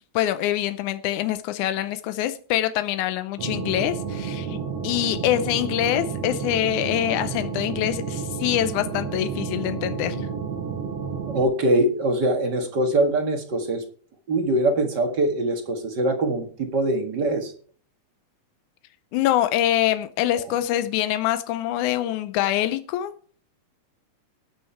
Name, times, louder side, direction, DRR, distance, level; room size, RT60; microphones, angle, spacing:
voice 1, 0.2-4.6 4.8-10.3 19.1-23.1, left 12 dB, 85° left, 2.2 m, -25 dB
sound 1, 3.4-11.4, right 6 dB, 65° right, 2.6 m, -31 dB
voice 2, 11.3-13.8 14.3-17.5 20.3-20.4, right 1 dB, 40° right, 1.9 m, -23 dB
19.0 x 6.4 x 4.5 m
omnidirectional pair, 3.4 m